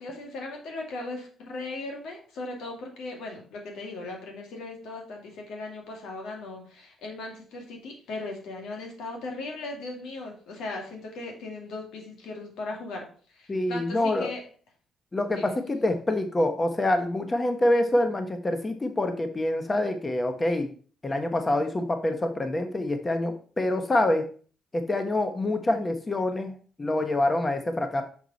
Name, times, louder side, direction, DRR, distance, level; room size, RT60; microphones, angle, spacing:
voice 1, 0.0-14.4 15.3-15.5, left 2 dB, 80° left, 1 dB, 2.3 m, -38 dB
voice 2, 13.5-14.3 15.1-20.7 21.0-24.2 24.7-28.0, left 1 dB, 25° left, 6 dB, 1.1 m, -26 dB
6.4 x 5.6 x 4.1 m, 0.42 s
cardioid pair, 90°, 0 cm